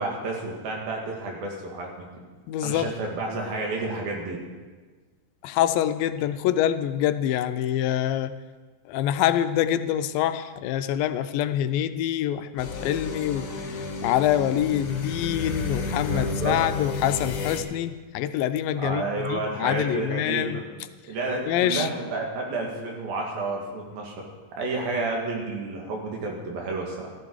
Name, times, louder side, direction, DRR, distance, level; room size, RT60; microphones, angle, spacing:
voice 1, 0.0-2.1 2.6-4.4 15.8-16.6 18.8-20.6 21.1-24.3 24.6-27.1, right 3 dB, 85° right, 0 dB, 3.9 m, -30 dB
voice 2, 2.5-2.9 5.4-8.4 8.9-13.5 14.0-20.6 21.5-21.9, left 11 dB, 85° left, 11 dB, 2.3 m, -25 dB
sound 1, 12.6-17.6, left 4 dB, 55° left, 2.1 m, -32 dB
13.5 x 13.5 x 4.7 m, 1.4 s
omnidirectional pair, 4.1 m